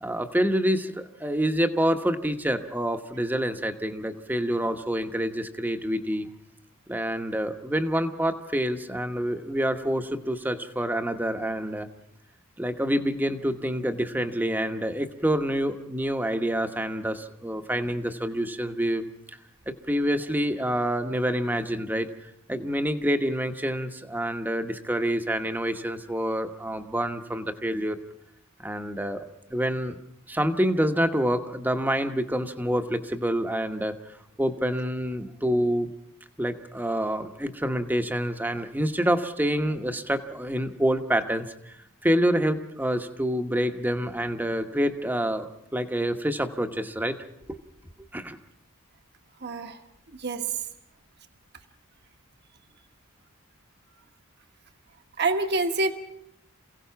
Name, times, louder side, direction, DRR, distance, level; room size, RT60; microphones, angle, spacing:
voice 1, 0.0-6.3 6.9-11.9 12.6-19.1 19.7-28.0 28.6-29.2 29.5-30.0 30.3-34.0 34.4-35.9 36.4-41.8 42.0-47.2 47.5-47.6 48.1-48.4, equal, 10° right, 7 dB, 1.1 m, -27 dB
voice 2, 49.4-49.8 50.2-50.4 55.2-55.9, right 2 dB, 50° right, 6 dB, 1.3 m, -26 dB
28.0 x 17.0 x 5.8 m, 0.77 s
head